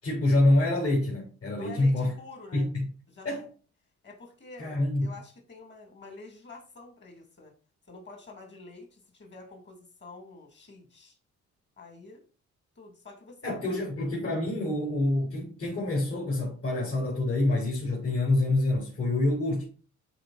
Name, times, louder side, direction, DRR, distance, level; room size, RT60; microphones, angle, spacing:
voice 1, 0.0-2.1 2.5-2.9 3.2-3.4 4.6-5.1 13.4-19.7, left 2 dB, 50° left, 4.6 m, -26 dB
voice 2, 1.5-2.7 3.1-3.4 4.0-7.5 7.9-11.2 11.8-12.2 12.7-13.7, left 3 dB, 35° left, 3.2 m, -48 dB
12.5 x 4.8 x 2.7 m
cardioid pair, 125°, 30 cm